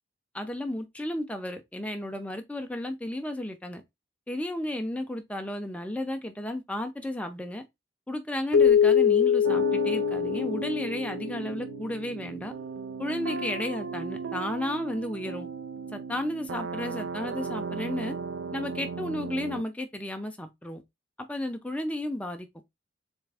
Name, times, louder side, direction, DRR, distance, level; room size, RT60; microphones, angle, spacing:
voice 1, 0.3-3.8 4.3-7.6 8.1-12.5 13.0-15.5 15.9-18.1 18.5-20.8 21.3-22.5, left 1 dB, 5° left, 0.6 m, -33 dB
Keyboard (musical), 8.5-11.5, left 8 dB, 70° left, 0.5 m, -23 dB
sound 1, 9.4-19.6, right 5 dB, 75° right, 0.4 m, -36 dB
3.5 x 3.2 x 3.3 m
head